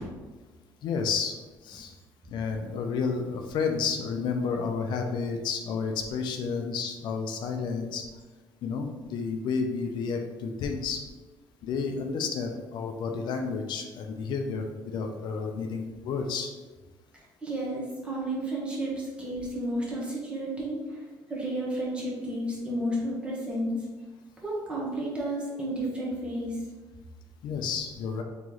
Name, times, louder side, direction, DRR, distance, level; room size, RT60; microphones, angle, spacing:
voice 1, 0.8-1.4 1.6-1.9 2.3-8.0 8.6-11.0 11.6-16.5 27.4-28.2, left 5 dB, 65° left, 4 dB, 0.4 m, -31 dB
voice 2, 17.1-21.0 21.3-23.7 24.4-26.6, right 1 dB, 15° right, -4 dB, 0.9 m, -32 dB
3.0 x 3.0 x 3.7 m, 1.3 s
cardioid pair, 165°, 8 cm